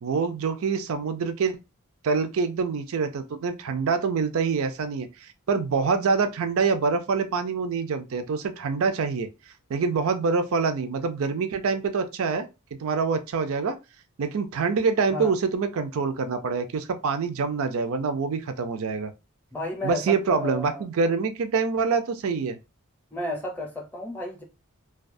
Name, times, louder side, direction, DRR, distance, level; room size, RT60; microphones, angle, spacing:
voice 1, 0.0-1.6 2.0-9.3 9.7-12.5 12.8-13.8 14.2-19.1 19.8-22.6, right 5 dB, 70° right, 0.4 m, -25 dB
voice 2, 19.5-20.8 23.1-24.4, left 1 dB, 10° left, 0.6 m, -32 dB
2.3 x 2.2 x 2.5 m
head